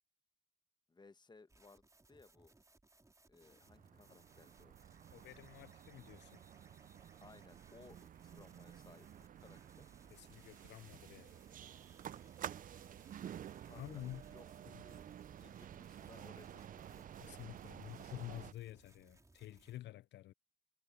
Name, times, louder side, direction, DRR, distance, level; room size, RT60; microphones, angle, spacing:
voice 1, 0.9-2.5 3.3-4.7 7.2-9.9 13.6-15.1 15.4-17.6, left 3 dB, 20° left, 1.1 m, -62 dB
sound 1, 1.5-19.8, right 2 dB, 15° right, 3.9 m, -67 dB
sound 2, 3.4-18.5, right 10 dB, 45° right, 0.4 m, -52 dB
voice 2, 5.1-6.4 10.1-11.4 13.7-14.2 14.7-14.8 17.2-20.3, left 14 dB, 65° left, 0.4 m, -50 dB
cardioid pair, 90°, 20 cm